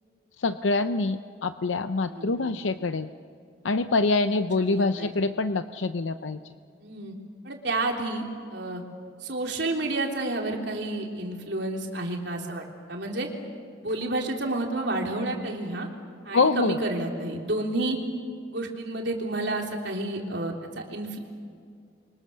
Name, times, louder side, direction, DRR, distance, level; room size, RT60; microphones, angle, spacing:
voice 1, 0.4-3.1 3.6-6.4 16.3-16.8, left 3 dB, 85° left, 10 dB, 0.7 m, -25 dB
voice 2, 2.0-2.5 4.6-5.1 6.8-7.2 7.4-8.2 8.5-8.8 9.2-13.3 13.8-15.9 16.2-18.0 18.5-21.2, right 2 dB, 70° right, 1 dB, 3.5 m, -30 dB
29.5 x 24.5 x 6.9 m, 2.3 s
head